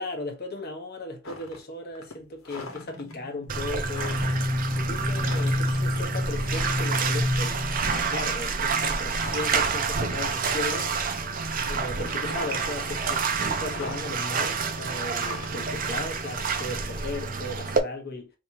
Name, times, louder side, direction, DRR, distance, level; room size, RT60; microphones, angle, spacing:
voice 1, 0.0-4.2 4.7-7.6 8.0-10.9 11.7-18.3, left 2 dB, 50° left, 1.2 m, -36 dB
sound 1, 1.2-1.6 1.9-3.1 3.6-3.7 3.9-4.4 5.1-5.7 6.0-6.1 6.5-7.1 7.7-8.3 8.7-9.6 10.1-10.2 10.6-11.2 11.5-12.9 13.2-14.2 15.1-16.9, left 3 dB, 80° left, 1.3 m, -41 dB
sound 2, 2.7-8.2, left 1 dB, 15° left, 1.2 m, -29 dB
Bathtub (filling or washing), 3.5-17.8, right 5 dB, 40° right, 0.6 m, -28 dB
5.1 x 2.9 x 2.9 m
head